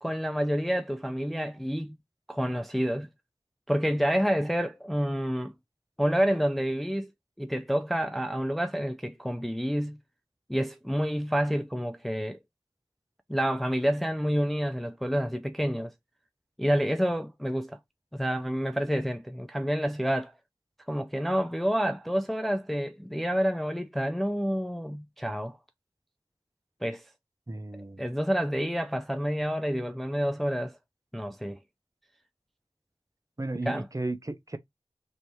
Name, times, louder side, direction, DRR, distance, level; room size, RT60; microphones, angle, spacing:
voice 1, 0.0-2.0 2.3-3.1 3.7-5.5 6.0-7.1 7.4-10.0 10.5-12.4 13.3-15.9 16.6-17.8 18.1-20.3 20.9-25.6 26.8-27.0 28.0-30.8 31.1-31.6 33.7-33.9, equal, ahead, 0.4 m, -28 dB
voice 2, 27.5-28.0 33.4-34.6, right 2 dB, 30° right, 0.7 m, -34 dB
3.3 x 3.0 x 4.0 m
wide cardioid pair, 50°, 10 cm